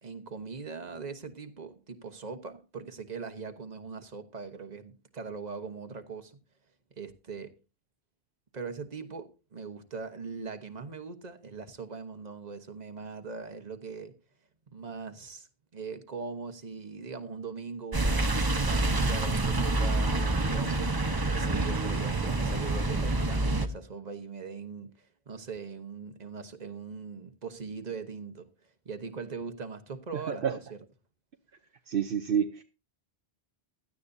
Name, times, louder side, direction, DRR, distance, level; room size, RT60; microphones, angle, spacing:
voice 1, 0.0-6.4 7.0-7.5 8.5-14.2 14.7-18.3 18.6-20.9 21.3-30.8, right 5 dB, 40° right, 1.3 m, -41 dB
sound 1, 17.9-23.7, right 2 dB, 25° right, 0.9 m, -27 dB
voice 2, 30.1-30.5 31.9-32.6, right 8 dB, 65° right, 0.9 m, -29 dB
17.0 x 12.0 x 2.7 m
omnidirectional pair, 1.1 m